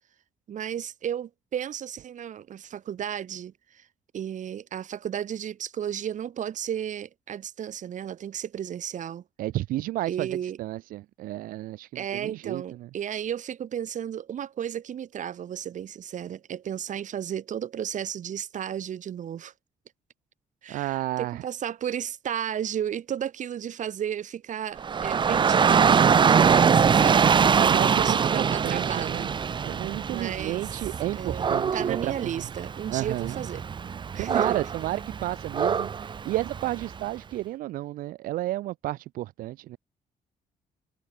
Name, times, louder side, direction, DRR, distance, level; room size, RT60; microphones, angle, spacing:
voice 1, 0.5-3.9 4.1-9.2 10.1-10.6 11.9-19.5 20.6-27.4 27.9-29.3 30.1-30.7 31.1-33.6 34.1-34.5, right 9 dB, 60° right, 2.0 m, -33 dB
voice 2, 9.4-12.9 20.7-21.4 27.5-29.3 29.6-32.1 32.9-33.4 34.2-39.8, right 16 dB, 85° right, 0.5 m, -32 dB
Dog / Rain, 24.8-37.0, right 6 dB, 35° right, 0.5 m, -23 dB
cardioid pair, 95°, 14 cm